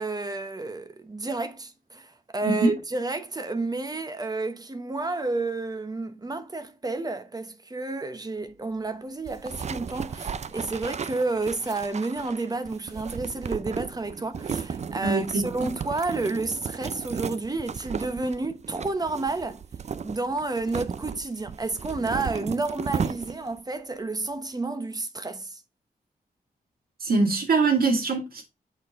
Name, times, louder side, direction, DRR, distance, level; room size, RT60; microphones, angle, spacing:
voice 1, 0.0-19.6 20.0-25.6, right 3 dB, 25° right, 0.9 m, -30 dB
voice 2, 2.4-2.8 15.0-15.7 27.0-28.4, right 3 dB, 70° right, 2.3 m, -23 dB
sound 1, 9.3-23.6, right 6 dB, 45° right, 0.5 m, -35 dB
7.8 x 4.4 x 3.6 m
wide cardioid pair, 115°, 16 cm